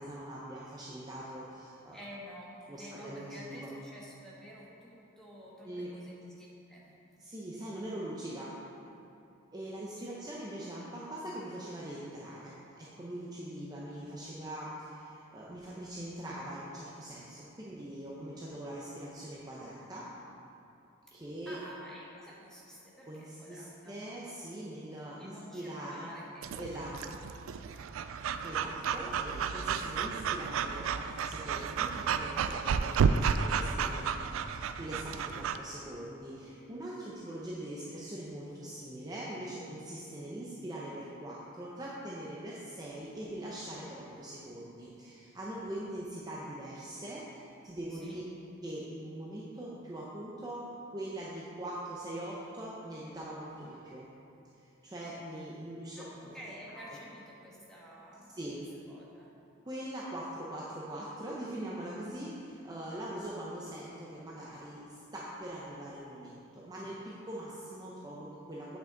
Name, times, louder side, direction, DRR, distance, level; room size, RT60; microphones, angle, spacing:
voice 1, 0.0-2.0 2.7-3.7 5.6-5.9 7.2-8.5 9.5-20.1 21.1-21.6 23.0-26.1 26.5-27.2 28.4-48.2 48.6-54.1 54.5-56.4 56.8-56.9 58.4-58.6 59.7-68.8, right 1 dB, 20° right, -6 dB, 0.6 m, -42 dB
voice 2, 1.9-2.5 2.8-7.1 7.6-7.8 10.0-10.2 21.5-24.0 25.2-26.6 27.5-28.1 47.9-48.2 56.0-58.4 58.9-59.3, equal, 5° left, -6 dB, 1.3 m, -50 dB
Breathing / Dog, 26.4-35.6, right 6 dB, 75° right, 0.3 m, -32 dB
8.7 x 5.9 x 3.8 m, 2.7 s
head